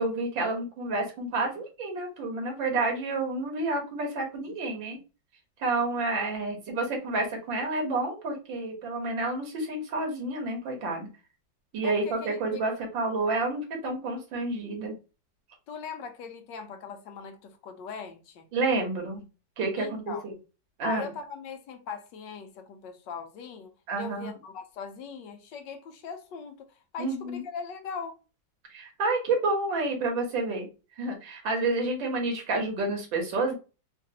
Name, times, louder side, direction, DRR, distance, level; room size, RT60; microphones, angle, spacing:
voice 1, 0.0-5.0 5.6-11.1 11.7-14.9 18.5-19.2 19.6-20.3 20.8-21.1 23.9-24.3 27.0-27.4 28.7-30.7 31.0-33.5, right 2 dB, 80° right, 1.8 m, -29 dB
voice 2, 11.8-12.6 15.7-18.5 19.8-20.2 20.8-23.7 24.0-26.7 26.9-28.2, left 6 dB, 75° left, 1.3 m, -40 dB
3.9 x 2.5 x 2.7 m
omnidirectional pair, 2.0 m